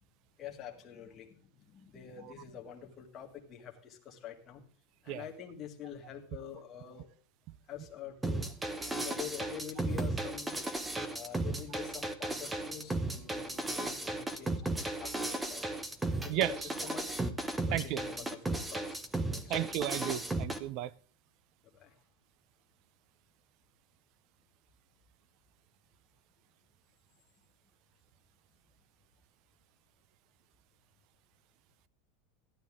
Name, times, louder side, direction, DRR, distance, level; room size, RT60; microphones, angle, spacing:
voice 1, 0.4-4.6 5.0-7.1 7.7-8.4 8.8-10.5 11.1-14.6 15.0-15.6 16.0-17.2 17.7-19.0 19.3-19.7 21.6-22.0, left 9 dB, 20° left, 1.8 m, -46 dB
sound 1, 8.2-20.6, right 2 dB, 5° right, 0.7 m, -35 dB
voice 2, 19.5-20.9, right 13 dB, 40° right, 0.4 m, -33 dB
14.5 x 11.5 x 3.6 m
supercardioid pair, 175°, 0 cm